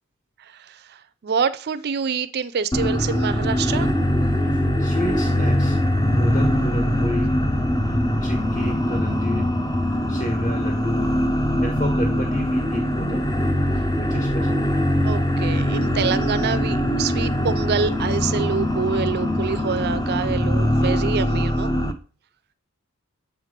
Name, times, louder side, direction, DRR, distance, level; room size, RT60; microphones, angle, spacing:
voice 1, 0.4-3.9 14.4-14.5 15.0-21.7, right 6 dB, 50° right, 0.4 m, -26 dB
sound 1, 2.7-21.9, equal, 15° left, 0.5 m, -22 dB
voice 2, 4.4-5.8 6.1-7.3 8.2-9.5 10.1-11.1 11.6-13.2 13.9-14.6, equal, 40° left, 1.5 m, -30 dB
8.0 x 3.3 x 5.0 m
head